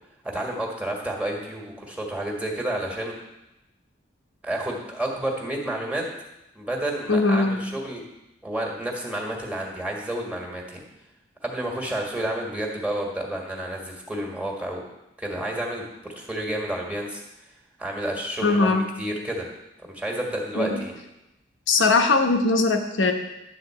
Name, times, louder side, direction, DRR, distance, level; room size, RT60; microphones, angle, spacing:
voice 1, 0.2-3.1 4.4-6.1 6.5-8.0 8.4-10.8 11.4-14.8 15.2-17.2 17.8-19.4 19.8-21.0, right 1 dB, 5° right, -1 dB, 1.6 m, -30 dB
voice 2, 7.1-7.6 18.4-18.9 20.6-20.8 21.7-23.1, left 3 dB, 85° left, 5 dB, 1.0 m, -20 dB
11.0 x 4.0 x 7.6 m, 0.92 s
head